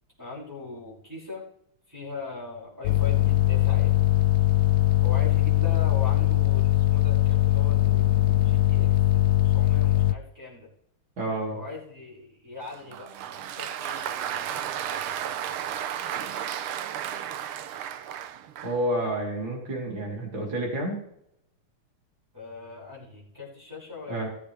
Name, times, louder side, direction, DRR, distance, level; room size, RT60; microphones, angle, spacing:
voice 1, 0.2-1.4 1.9-3.9 5.0-10.7 11.5-16.3 22.3-24.3, left 4 dB, 10° right, -5 dB, 6.1 m, -41 dB
sound 1, 2.8-10.1, left 13 dB, 75° left, 1.4 m, -21 dB
voice 2, 11.2-11.6 18.6-21.0 24.1-24.3, right 1 dB, 60° right, -2 dB, 4.3 m, -29 dB
Applause, 12.7-18.9, right 10 dB, 80° right, 1.6 m, -33 dB
19.5 x 8.5 x 3.4 m, 0.75 s
omnidirectional pair, 2.4 m